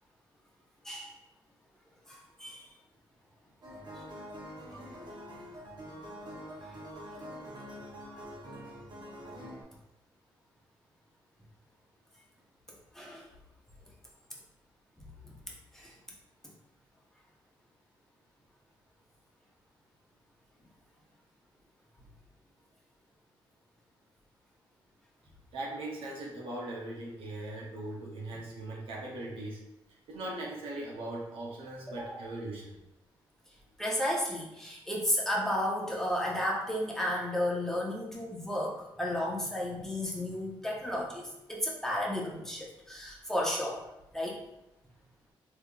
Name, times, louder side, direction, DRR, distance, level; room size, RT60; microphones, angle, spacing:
voice 1, 2.1-2.6 6.2-6.3 12.9-13.2 15.0-15.1 15.7-15.9 31.9-32.2 33.8-43.8 44.1-44.4, left 1 dB, 5° left, -4 dB, 0.9 m, -33 dB
sound 1, 3.6-9.6, equal, 55° right, 1.0 m, -45 dB
voice 2, 25.5-29.6 30.1-32.7, right 1 dB, 80° right, -3 dB, 0.8 m, -39 dB
3.5 x 2.8 x 2.4 m, 0.89 s
cardioid pair, 75°, 9 cm